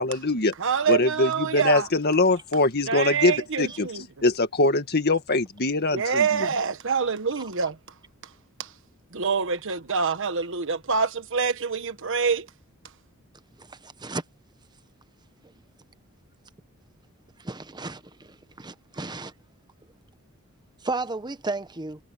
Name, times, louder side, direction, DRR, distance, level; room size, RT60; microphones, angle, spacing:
voice 1, 0.0-0.5 0.9-3.9 4.2-6.5, left 2 dB, 50° left, 1.9 m, -23 dB
voice 2, 0.6-1.9 2.9-4.0 5.9-7.8 8.6-8.7 9.1-12.5, right 5 dB, 60° right, 1.3 m, -26 dB
voice 3, 17.4-18.0 18.6-19.3 20.8-22.0, right 3 dB, 20° right, 1.0 m, -32 dB
head